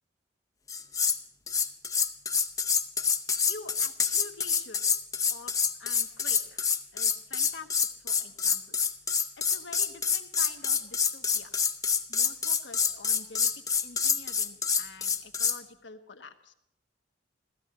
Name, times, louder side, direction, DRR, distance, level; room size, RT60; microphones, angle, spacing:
sound 1, 0.7-1.2 1.5-15.6, left 6 dB, 20° left, 0.7 m, -27 dB
voice 1, 3.4-4.8 5.3-8.7 9.5-11.5 12.1-13.5 13.8-16.5, left 4 dB, 85° left, 6 dB, 1.3 m, -47 dB
16.0 x 14.0 x 5.9 m, 0.75 s
head